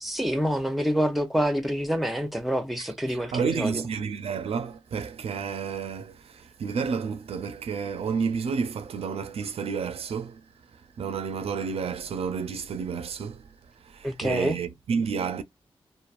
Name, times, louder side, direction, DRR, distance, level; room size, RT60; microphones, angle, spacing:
voice 1, 0.0-3.8 14.0-14.6, equal, ahead, 0.7 m, -27 dB
voice 2, 2.8-10.4 11.0-13.4 13.9-15.4, right 6 dB, 80° right, 0.4 m, -30 dB
2.9 x 2.1 x 2.4 m
cardioid pair, 75°, 10 cm